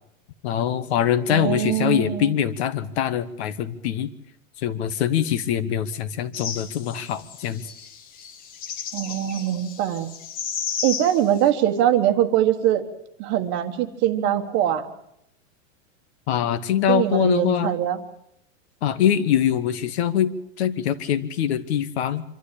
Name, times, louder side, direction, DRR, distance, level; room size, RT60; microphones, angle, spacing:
voice 1, 0.4-4.1 4.6-7.6 16.3-17.7 18.8-20.3 20.6-22.2, left 9 dB, 55° left, 13 dB, 1.5 m, -23 dB
voice 2, 1.3-2.3 8.9-10.1 10.8-12.8 13.2-14.9 16.9-18.0, right 11 dB, 30° right, 7 dB, 1.4 m, -22 dB
sound 1, 6.3-11.4, left 7 dB, 20° left, 1.1 m, -34 dB
25.5 x 13.0 x 8.6 m, 0.77 s
supercardioid pair, 170°, 40 cm